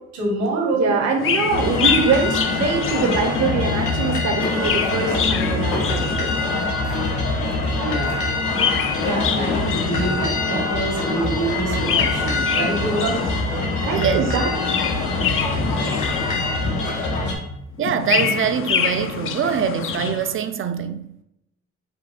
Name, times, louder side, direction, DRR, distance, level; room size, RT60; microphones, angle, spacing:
voice 1, 0.0-1.0 7.8-8.2 9.0-13.2, right 2 dB, 80° right, 1.5 m, -25 dB
voice 2, 0.7-6.3 13.8-14.5, right 5 dB, 60° right, 0.8 m, -23 dB
Chirp tweet, 1.2-3.6 4.3-6.8 8.3-10.5 11.7-13.6 14.4-16.7 17.8-20.3, left 8 dB, 45° left, 0.4 m, -26 dB
sound 1, 1.5-17.3, left 2 dB, 85° left, 1.1 m, -24 dB
sound 2, 3.3-9.2, left 2 dB, 70° left, 1.4 m, -33 dB
voice 3, 13.9-14.3 17.8-21.1, right 8 dB, 45° right, 0.4 m, -23 dB
5.1 x 2.2 x 4.1 m
cardioid pair, 90°, 30 cm